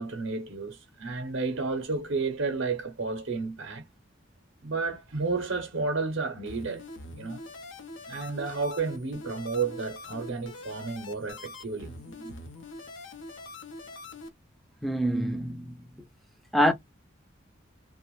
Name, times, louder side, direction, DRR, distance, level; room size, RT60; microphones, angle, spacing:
voice 1, 0.0-3.9 4.6-7.4 8.1-12.4, right 4 dB, 65° right, 0.6 m, -32 dB
sound 1, 6.5-14.3, left 2 dB, 80° left, 0.6 m, -44 dB
voice 2, 14.8-15.9 16.5-16.7, equal, ahead, 0.3 m, -25 dB
2.4 x 2.1 x 2.9 m
head